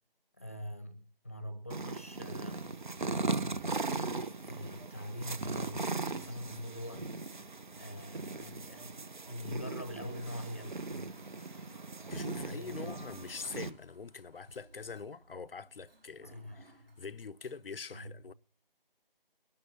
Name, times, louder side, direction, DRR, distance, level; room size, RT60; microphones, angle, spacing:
voice 1, 0.4-2.7 3.9-7.1 7.8-9.0 9.3-11.1 12.0-13.1 16.2-16.9 17.9-18.2, equal, 15° left, 0.8 m, -44 dB
sound 1, 1.7-13.7, right 3 dB, 55° right, 0.8 m, -38 dB
Toilet flush, 8.7-17.8, right 2 dB, 75° right, 3.0 m, -62 dB
voice 2, 12.1-18.3, left 5 dB, 70° left, 0.6 m, -44 dB
22.5 x 12.5 x 2.7 m
figure-of-eight pair, 170°, 29 cm